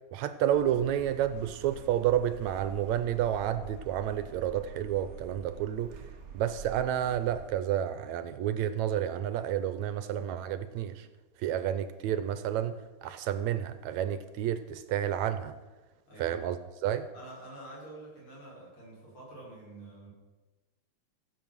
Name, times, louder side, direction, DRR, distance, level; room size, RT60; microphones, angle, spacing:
voice 1, 0.1-5.9 6.3-11.1 11.4-12.7 13.0-15.5 16.2-16.6 16.8-17.1, right 10 dB, 80° right, 12 dB, 2.0 m, -30 dB
sound 1, 0.5-7.5, right 7 dB, 50° right, 1.1 m, -47 dB
voice 2, 16.1-16.4 17.1-20.1, right 1 dB, 45° left, -5 dB, 6.5 m, -47 dB
15.5 x 8.2 x 7.4 m, 1.2 s
omnidirectional pair, 3.3 m